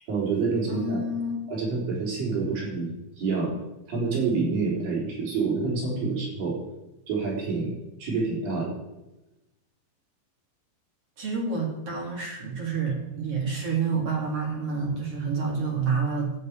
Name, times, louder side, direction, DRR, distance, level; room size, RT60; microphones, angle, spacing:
voice 1, 0.1-1.0 1.5-3.5 3.9-6.6 7.1-7.7 8.0-8.7, right 4 dB, 85° right, -5 dB, 6.2 m, -27 dB
voice 2, 0.7-1.4 11.2-16.3, right 4 dB, 45° right, -1 dB, 3.4 m, -28 dB
12.5 x 6.5 x 9.2 m, 0.98 s
omnidirectional pair, 3.9 m